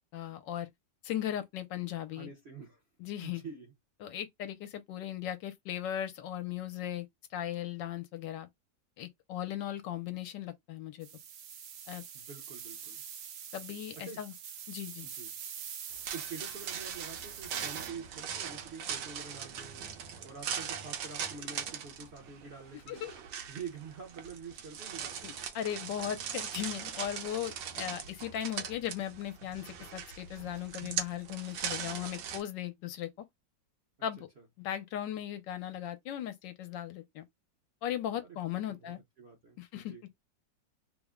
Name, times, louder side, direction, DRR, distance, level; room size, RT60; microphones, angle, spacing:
voice 1, 0.1-0.7 1.0-2.3 3.0-3.4 4.0-7.1 7.3-8.5 9.0-11.1 11.9-12.0 13.5-14.3 14.7-15.1 22.9-23.1 25.2-33.1 34.0-34.3 34.6-37.3 37.8-39.0 39.6-39.9, left 11 dB, 80° left, 1.3 m, -37 dB
voice 2, 2.1-2.8 3.2-3.7 12.1-13.0 14.0-14.2 15.0-15.3 16.1-23.1 23.5-25.3 34.4-34.5 38.2-40.0, right 5 dB, 50° right, 0.7 m, -47 dB
sound 1, 11.0-17.9, right 8 dB, 70° right, 1.2 m, -45 dB
sound 2, 15.9-32.4, right 8 dB, 85° right, 1.4 m, -40 dB
3.5 x 2.1 x 3.5 m
omnidirectional pair, 2.0 m